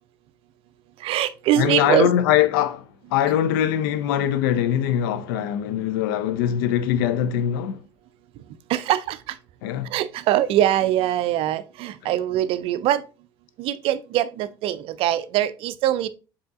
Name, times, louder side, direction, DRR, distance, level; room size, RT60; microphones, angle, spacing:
voice 1, 1.0-2.1 8.7-9.4 9.9-13.0 13.6-16.1, right 12 dB, 50° right, 0.4 m, -22 dB
voice 2, 1.6-7.8 9.6-9.9, left 10 dB, 65° left, 0.4 m, -22 dB
7.5 x 2.8 x 2.4 m
figure-of-eight pair, 60°, 12 cm